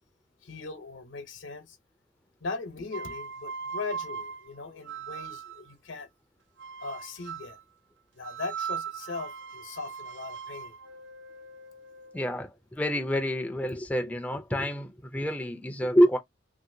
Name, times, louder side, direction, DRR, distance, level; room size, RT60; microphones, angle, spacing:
voice 1, 0.4-1.8 2.4-6.1 6.8-7.6 8.1-10.8, left 3 dB, 75° left, 0.8 m, -39 dB
sound 1, 2.9-5.7 6.6-7.6 8.2-12.2, right 6 dB, 70° right, 0.6 m, -39 dB
voice 2, 12.1-16.2, equal, 10° left, 0.3 m, -27 dB
3.0 x 2.6 x 2.6 m
head